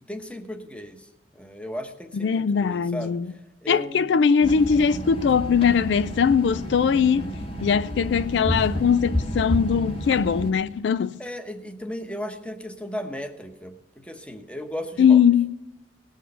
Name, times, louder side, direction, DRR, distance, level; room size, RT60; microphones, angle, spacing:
voice 1, 0.1-1.1 1.3-3.2 3.6-4.0 11.2-13.7 14.0-15.2, left 1 dB, 5° left, 1.0 m, -35 dB
voice 2, 2.1-3.3 3.7-7.3 7.6-11.2 15.0-15.5, left 6 dB, 70° left, 0.3 m, -20 dB
sound 1, 4.4-10.5, equal, 30° left, 1.7 m, -30 dB
18.0 x 6.4 x 6.7 m
head